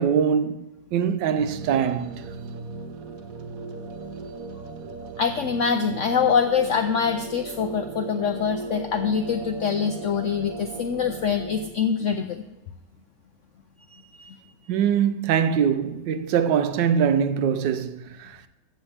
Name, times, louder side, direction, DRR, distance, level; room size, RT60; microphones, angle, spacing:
voice 1, 0.0-2.2 14.7-18.5, right 8 dB, 85° right, 1.3 m, -23 dB
sound 1, 1.4-11.7, right 3 dB, 60° right, 1.0 m, -37 dB
voice 2, 5.2-12.4 13.9-14.4, left 6 dB, 80° left, 0.6 m, -24 dB
14.5 x 7.0 x 3.4 m
omnidirectional pair, 1.9 m